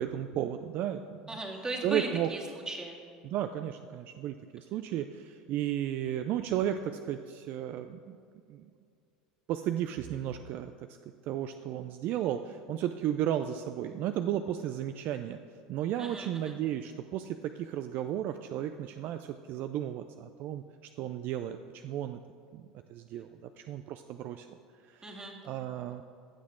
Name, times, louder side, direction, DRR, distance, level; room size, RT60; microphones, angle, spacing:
voice 1, 0.0-1.4 1.8-2.3 3.2-8.2 8.5-8.6 9.5-10.7 11.3-15.4 15.7-20.6 21.0-22.2 22.5-22.6 22.9-23.3 23.6-24.5 24.9-26.0, right 11 dB, 55° right, 9 dB, 0.4 m, -34 dB
voice 2, 1.3-2.4 2.7-3.0 16.0-16.5 25.0-25.3, right 2 dB, 20° right, 0 dB, 1.9 m, -37 dB
15.5 x 6.4 x 3.7 m, 2.3 s
hypercardioid pair, 85°, 4 cm